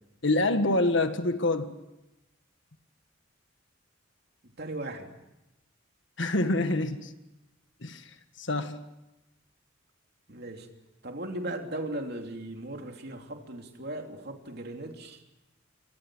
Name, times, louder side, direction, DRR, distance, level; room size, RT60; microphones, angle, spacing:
voice 1, 0.2-1.7 6.2-7.1 7.8-8.0 8.4-8.8, left 2 dB, 60° left, 8 dB, 1.7 m, -26 dB
voice 2, 4.6-5.1 10.3-10.7 11.0-15.3, right 1 dB, 50° right, 3 dB, 3.1 m, -37 dB
28.5 x 24.5 x 6.3 m, 0.96 s
head